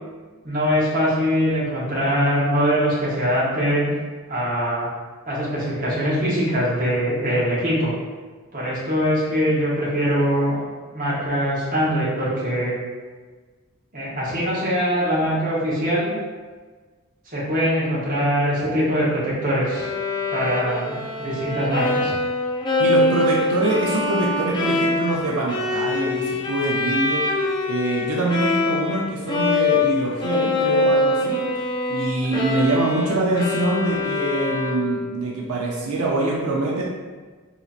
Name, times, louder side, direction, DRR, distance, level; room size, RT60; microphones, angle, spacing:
voice 1, 0.4-3.9 4.3-4.9 5.3-7.9 8.5-10.6 10.9-12.7 13.9-16.1 17.3-19.9 20.3-22.1, equal, 40° right, -7 dB, 1.1 m, -22 dB
Bowed string instrument, 19.7-29.0 29.3-35.1, left 2 dB, 20° left, 0.3 m, -24 dB
voice 2, 22.8-27.2 27.7-31.4 31.9-36.8, right 2 dB, 90° right, -3 dB, 0.6 m, -24 dB
3.9 x 2.8 x 2.4 m, 1.4 s
head